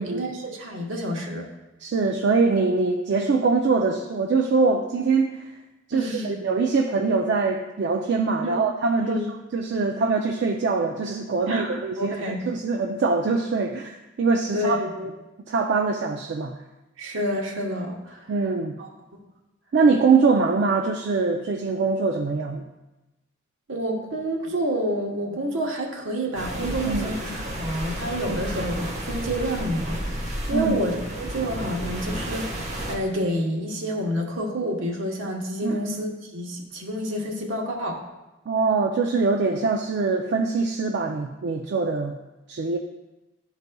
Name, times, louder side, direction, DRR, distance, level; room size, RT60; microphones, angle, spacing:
voice 1, 0.0-1.5 5.9-6.4 8.4-8.6 9.0-9.3 11.5-12.5 14.5-15.1 17.0-18.3 18.8-18.9 23.7-38.0, equal, 80° right, 0 dB, 1.1 m, -29 dB
voice 2, 1.8-5.5 5.9-9.2 9.5-14.8 15.5-16.5 18.3-18.8 19.7-22.7 26.8-27.1 28.3-28.4 30.5-30.8 35.6-35.9 38.5-42.1 42.5-42.8, right 4 dB, 60° right, 3 dB, 0.4 m, -23 dB
sound 1, 26.3-33.0, right 1 dB, 35° right, 1.1 m, -32 dB
11.5 x 4.0 x 2.2 m, 1.0 s
head